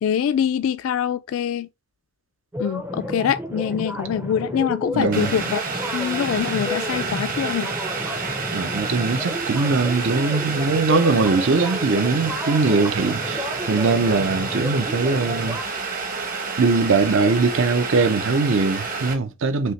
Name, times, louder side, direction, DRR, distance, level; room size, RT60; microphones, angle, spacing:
voice 1, 0.0-1.7 2.6-5.6 5.9-7.7, left 8 dB, 80° left, 0.3 m, -24 dB
sound 1, 2.5-15.6, left 1 dB, 10° right, 0.4 m, -32 dB
voice 2, 4.9-5.3 8.5-15.6 16.6-19.7, right 4 dB, 65° right, 0.6 m, -21 dB
Boiling, 5.1-19.1, right 4 dB, 40° right, 1.1 m, -29 dB
5.3 x 2.8 x 3.2 m
head